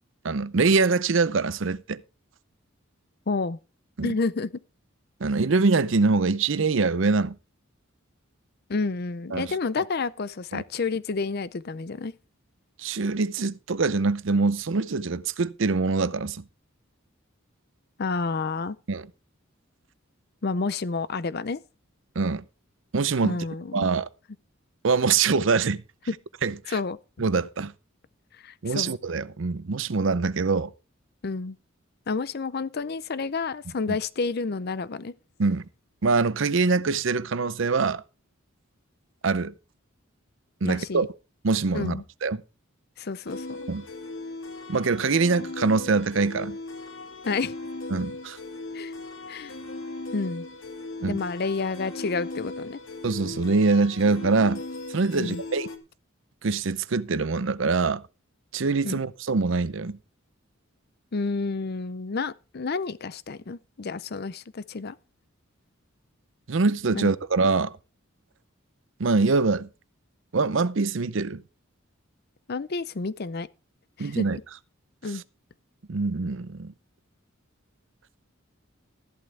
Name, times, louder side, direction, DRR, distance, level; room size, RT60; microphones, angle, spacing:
voice 1, 0.2-2.0 4.0-4.1 5.2-7.4 9.3-9.5 10.5-10.6 12.8-16.4 18.9-19.1 22.2-22.4 22.9-23.4 23.7-24.1 24.8-25.8 26.4-26.8 27.2-27.7 28.6-30.7 33.9-34.0 35.4-35.7 36.0-38.0 39.2-39.5 40.6-41.1 41.4-42.4 43.7-43.9 44.7-46.6 47.9-48.4 51.0-51.2 53.0-54.6 54.9-55.7 56.4-58.0 58.5-60.0 66.5-67.7 69.0-69.7 70.3-71.4 74.0-74.4 75.9-76.7, right 4 dB, 65° right, 0.6 m, -24 dB
voice 2, 3.3-3.6 4.0-4.5 8.7-12.1 18.0-18.8 20.4-21.6 23.2-23.9 26.7-27.0 28.4-29.0 31.2-31.6 32.1-35.1 40.6-41.1 41.7-42.0 43.0-43.7 47.3-47.5 48.7-48.9 49.3-49.5 50.1-50.5 51.1-52.8 55.1-55.4 58.9-59.0 61.1-65.0 66.9-67.1 72.5-73.5 74.0-74.2 75.0-75.2, left 4 dB, 50° left, 0.6 m, -30 dB
sound 1, 43.3-55.8, left 2 dB, 75° left, 1.7 m, -38 dB
14.0 x 11.0 x 3.3 m
head